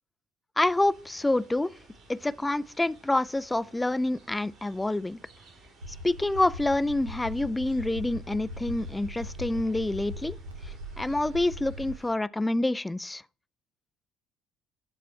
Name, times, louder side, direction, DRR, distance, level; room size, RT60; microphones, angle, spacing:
voice 1, 0.6-1.7 2.1-5.2 6.0-10.4 10.6-13.2, left 2 dB, 10° left, 0.3 m, -27 dB
sound 1, 0.6-12.1, right 3 dB, 50° right, 3.7 m, -56 dB
sound 2, 5.8-12.0, equal, 80° right, 0.6 m, -40 dB
12.5 x 4.2 x 3.4 m
figure-of-eight pair, 50°, 0 cm